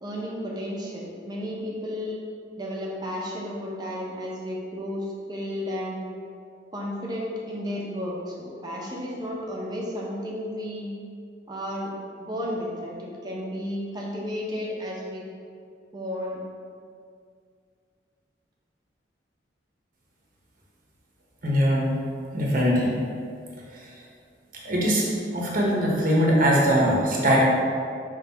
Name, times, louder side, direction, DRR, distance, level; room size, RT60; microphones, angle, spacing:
voice 1, 0.0-2.2 2.6-6.0 6.7-10.9 11.5-11.9 12.2-15.3 15.9-16.4, equal, 20° right, -3 dB, 1.0 m, -33 dB
voice 2, 21.4-21.9 22.3-22.9 23.7-23.8 24.6-25.1 25.3-27.4, equal, 45° right, -4 dB, 1.2 m, -21 dB
5.6 x 3.5 x 5.7 m, 2.3 s
head